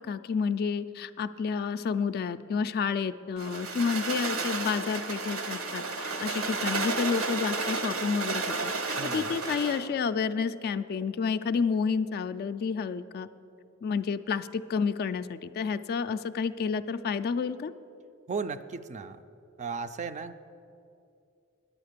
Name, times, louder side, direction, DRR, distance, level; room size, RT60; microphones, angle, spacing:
voice 1, 0.1-13.3 13.8-17.7, left 5 dB, 45° left, 12 dB, 0.3 m, -30 dB
sound 1, 3.4-9.9, right 4 dB, 70° right, 0.9 m, -32 dB
voice 2, 9.0-9.4 18.3-19.2 19.6-20.5, right 4 dB, 35° right, 11 dB, 0.4 m, -35 dB
9.9 x 8.6 x 6.6 m, 2.6 s
head